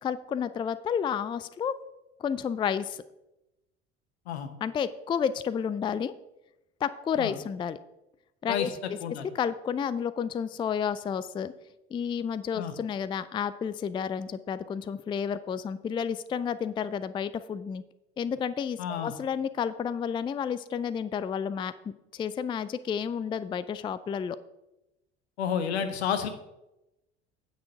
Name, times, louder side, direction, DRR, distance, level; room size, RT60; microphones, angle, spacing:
voice 1, 0.0-1.7 2.2-3.0 4.6-6.1 6.8-7.8 8.4-9.0 9.4-11.5 11.9-17.8 18.2-24.4, left 7 dB, 15° left, 15 dB, 0.4 m, -31 dB
voice 2, 8.5-9.3 12.5-12.7 18.8-19.1 25.4-26.3, left 8 dB, 75° left, 9 dB, 1.1 m, -31 dB
9.4 x 6.3 x 5.6 m, 0.92 s
figure-of-eight pair, 65°, 33 cm